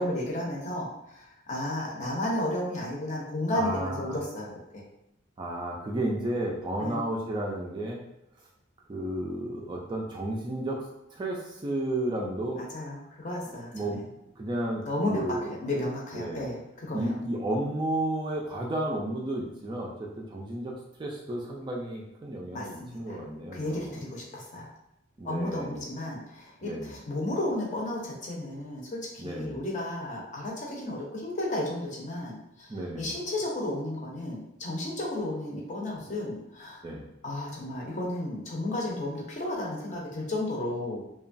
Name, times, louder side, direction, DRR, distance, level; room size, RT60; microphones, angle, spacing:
voice 1, 0.0-4.8 6.8-7.0 12.6-14.0 14.9-17.2 22.5-23.2 23.5-24.7 25.2-32.7 33.0-36.8 37.2-41.0, left 1 dB, 40° left, -3 dB, 0.6 m, -33 dB
voice 2, 3.5-4.2 5.4-8.0 8.9-12.6 13.7-15.5 16.1-16.5 16.9-23.9 25.2-25.8 26.6-27.0 29.2-29.6 32.7-33.1 36.0-36.1 36.8-37.0, right 1 dB, 25° right, -1 dB, 0.3 m, -33 dB
2.9 x 2.2 x 2.5 m, 0.84 s
head